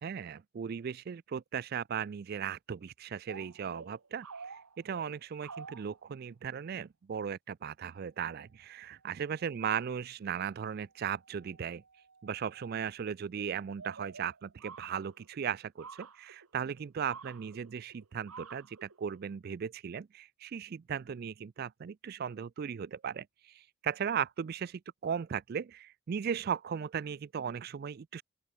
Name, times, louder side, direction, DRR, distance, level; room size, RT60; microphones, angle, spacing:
voice 1, 0.0-11.8 12.2-23.3 23.5-28.2, right 7 dB, 45° right, 0.3 m, -37 dB
sound 1, 3.3-6.0 8.4-8.5 8.8-8.9 9.0-9.6 10.9-12.7 13.3-19.3, right 5 dB, 85° right, 1.5 m, -50 dB
open air
head